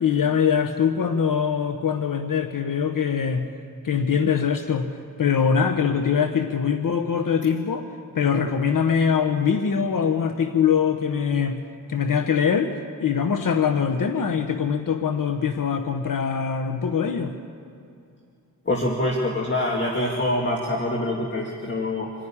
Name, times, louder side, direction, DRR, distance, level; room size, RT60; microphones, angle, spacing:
voice 1, 0.0-3.5 3.8-4.9 5.2-7.9 8.1-11.6 11.9-12.7 13.0-17.3, left 7 dB, 70° left, 7 dB, 1.2 m, -23 dB
voice 2, 18.7-22.1, left 1 dB, 35° left, 0 dB, 2.2 m, -25 dB
26.0 x 11.5 x 10.0 m, 2.5 s
cardioid pair, 85°, 34 cm